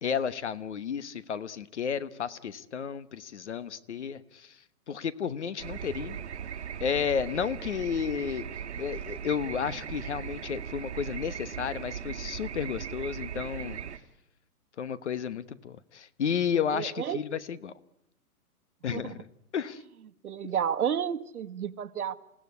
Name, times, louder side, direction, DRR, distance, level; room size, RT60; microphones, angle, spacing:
voice 1, 0.0-6.2 6.8-8.5 8.8-13.8 14.8-17.7 18.8-19.8, left 7 dB, 50° left, 16 dB, 1.2 m, -32 dB
sound 1, 5.6-14.0, right 8 dB, 50° right, 1.5 m, -38 dB
voice 2, 16.7-17.2 18.9-19.2 20.2-22.2, right 8 dB, 80° right, 8 dB, 1.5 m, -31 dB
28.5 x 17.0 x 9.6 m, 0.81 s
hypercardioid pair, 175°, 44 cm